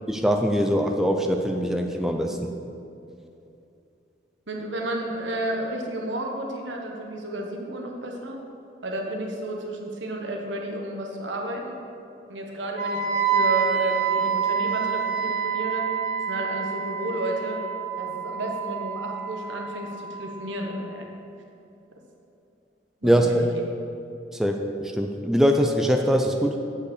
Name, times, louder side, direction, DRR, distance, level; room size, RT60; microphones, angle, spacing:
voice 1, 0.1-2.5 23.0-23.5 24.3-26.6, equal, ahead, 3 dB, 0.4 m, -22 dB
voice 2, 4.5-8.4 8.8-11.8 12.3-15.9 16.3-17.6 18.0-21.1 23.0-23.5, right 1 dB, 85° right, 0 dB, 1.3 m, -32 dB
Wind instrument woodwind instrument, 12.8-20.7, right 7 dB, 50° right, 2.0 m, -27 dB
8.2 x 5.5 x 6.6 m, 2.8 s
head